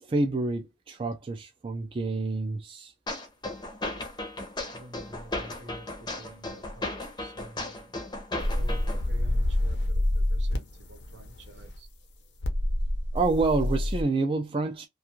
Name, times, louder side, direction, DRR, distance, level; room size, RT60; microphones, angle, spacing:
voice 1, 0.0-2.9 13.1-14.9, right 3 dB, 25° right, 0.3 m, -28 dB
sound 1, 3.1-9.1, left 2 dB, 20° left, 0.6 m, -36 dB
voice 2, 4.7-6.9 7.2-7.9 8.3-11.9, right 1 dB, 70° right, 0.8 m, -48 dB
sound 2, 8.4-11.8 12.4-14.0, left 1 dB, 65° left, 0.6 m, -27 dB
2.4 x 2.3 x 2.8 m
head